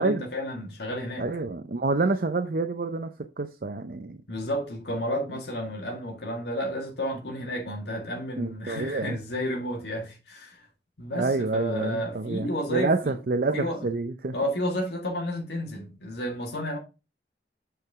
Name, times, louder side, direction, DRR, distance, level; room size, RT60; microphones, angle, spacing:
voice 1, 0.0-1.3 4.3-10.7 11.0-13.2 13.5-13.9 14.3-16.8, equal, 75° left, 1.9 m, -31 dB
voice 2, 1.2-3.1 3.4-4.2 8.4-9.2 11.2-14.3, right 3 dB, 55° right, 0.6 m, -28 dB
8.1 x 4.7 x 3.6 m
head